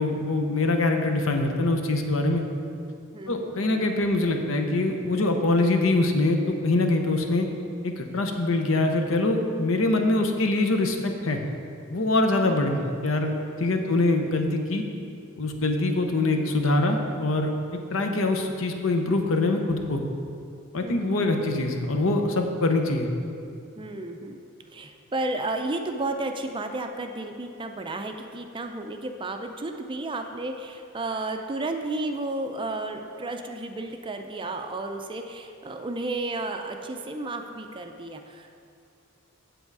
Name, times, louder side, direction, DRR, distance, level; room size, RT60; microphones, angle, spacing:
voice 1, 0.0-2.4 3.3-7.5 7.8-11.4 11.9-13.3 13.6-14.8 15.4-20.0 20.7-23.1, left 2 dB, 65° left, 4 dB, 0.8 m, -24 dB
voice 2, 3.1-3.9 12.2-12.5 13.7-13.9 20.8-21.3 23.8-24.4 24.7-38.5, right 2 dB, 25° right, 5 dB, 0.5 m, -33 dB
8.0 x 7.9 x 4.7 m, 2.5 s
head